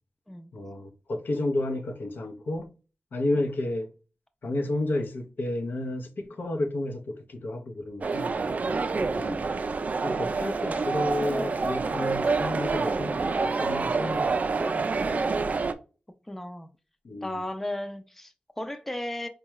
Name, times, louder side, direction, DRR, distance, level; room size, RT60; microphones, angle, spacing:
voice 1, 0.5-2.7 3.1-3.9 4.4-8.4 9.1-9.5 10.0-14.8 17.0-17.4, left 1 dB, 75° left, 0.7 m, -31 dB
sound 1, 8.0-15.7, right 4 dB, 50° right, 0.4 m, -27 dB
voice 2, 13.7-14.4 16.3-16.7 17.2-19.3, left 1 dB, 10° left, 0.4 m, -36 dB
4.5 x 2.3 x 3.0 m
wide cardioid pair, 120°, 3 cm